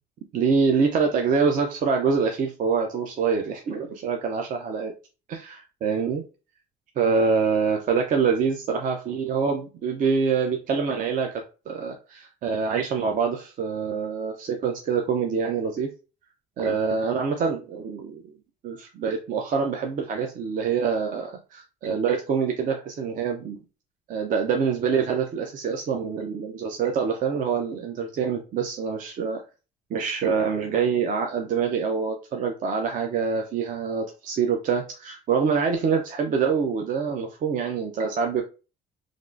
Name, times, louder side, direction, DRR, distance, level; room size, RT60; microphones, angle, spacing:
voice 1, 0.3-4.9 5.3-6.2 7.0-15.9 16.6-18.3 18.6-23.6 24.1-29.4 29.9-38.4, right 5 dB, 50° right, 3 dB, 0.5 m, -25 dB
3.4 x 2.4 x 2.4 m, 0.33 s
cardioid pair, 110°, 17 cm